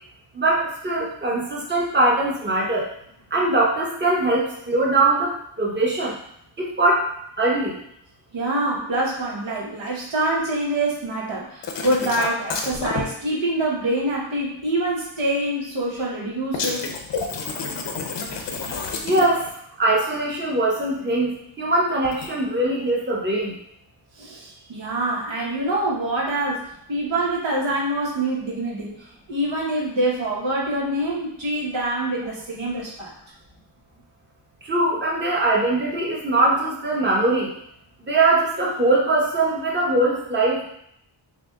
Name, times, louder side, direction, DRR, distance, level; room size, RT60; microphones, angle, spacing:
voice 1, 0.3-2.9 3.3-6.2 6.6-7.1 7.4-7.8 19.0-19.5 19.8-23.5 34.6-37.5 38.1-40.7, right 2 dB, 20° right, -4 dB, 1.1 m, -21 dB
voice 2, 8.3-16.9 24.2-33.1, right 1 dB, 70° right, -4 dB, 1.1 m, -25 dB
sound 1, 11.6-13.0 16.5-19.5 22.0-22.3, left 4 dB, 65° left, 0.7 m, -29 dB
6.0 x 2.3 x 2.3 m, 0.73 s
cardioid pair, 70°, 47 cm